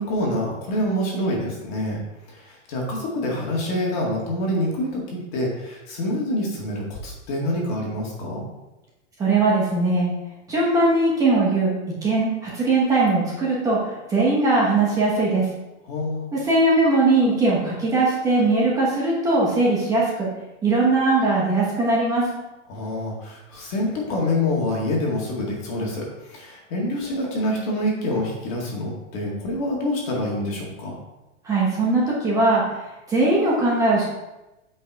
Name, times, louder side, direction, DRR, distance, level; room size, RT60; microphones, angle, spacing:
voice 1, 0.0-2.0 2.3-8.4 15.9-16.3 22.7-31.0, left 1 dB, 30° left, -2 dB, 1.9 m, -26 dB
voice 2, 9.2-10.1 10.5-11.7 12.0-15.5 16.3-20.3 20.6-22.3 31.4-32.6 33.1-34.0, right 2 dB, 10° right, -5 dB, 1.1 m, -20 dB
8.7 x 5.4 x 4.7 m, 0.99 s
supercardioid pair, 175°, 37 cm